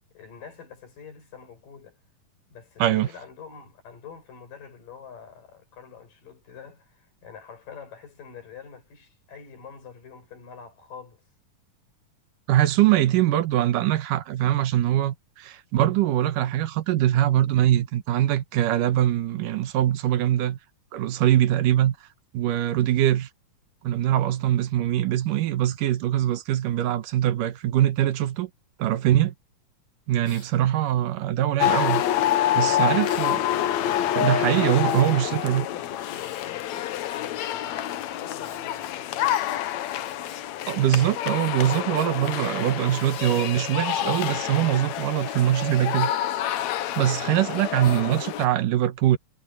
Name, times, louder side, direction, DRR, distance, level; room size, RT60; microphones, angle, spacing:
voice 1, 0.1-2.0 2.5-11.2 32.6-33.2 34.4-39.5 47.5-47.7, left 7 dB, 85° left, 7.5 m, -46 dB
voice 2, 12.5-20.6 20.9-22.0 22.3-23.3 23.8-28.5 28.8-29.3 30.1-32.0 32.5-33.4 34.1-35.7 40.7-46.1 47.0-49.2, right 12 dB, 80° right, 2.7 m, -23 dB
Breathing, 30.2-30.5 31.6-32.3 33.0-35.1 35.9-37.5 38.4-40.8 41.0-41.1 41.7-42.3 42.8-43.5 43.9-44.4 44.8-47.0 47.8-48.1, left 4 dB, 45° left, 5.7 m, -50 dB
sound 1, 31.6-48.5, left 11 dB, 70° left, 2.0 m, -27 dB
omnidirectional pair, 3.7 m